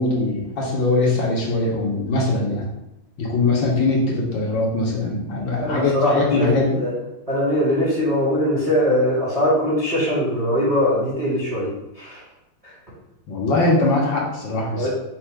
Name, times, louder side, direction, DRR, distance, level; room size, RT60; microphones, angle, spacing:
voice 1, 0.0-2.7 3.2-6.8 13.3-14.9, left 2 dB, 65° left, -2 dB, 1.5 m, -21 dB
voice 2, 5.6-6.9 7.3-11.7 12.0-12.2 12.6-12.7 14.7-14.9, equal, 20° right, -7 dB, 1.1 m, -21 dB
4.4 x 2.3 x 4.6 m, 0.89 s
omnidirectional pair, 2.3 m